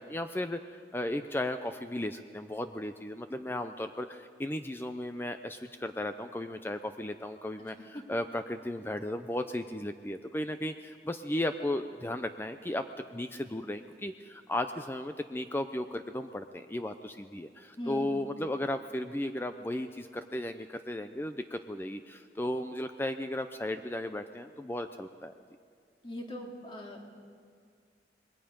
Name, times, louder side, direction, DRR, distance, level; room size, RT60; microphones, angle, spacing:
voice 1, 0.0-12.8 13.1-25.3, left 1 dB, 15° left, 8 dB, 0.5 m, -35 dB
voice 2, 17.8-18.2 26.0-27.2, equal, 30° left, 0 dB, 2.6 m, -41 dB
26.5 x 21.0 x 5.3 m, 2.1 s
head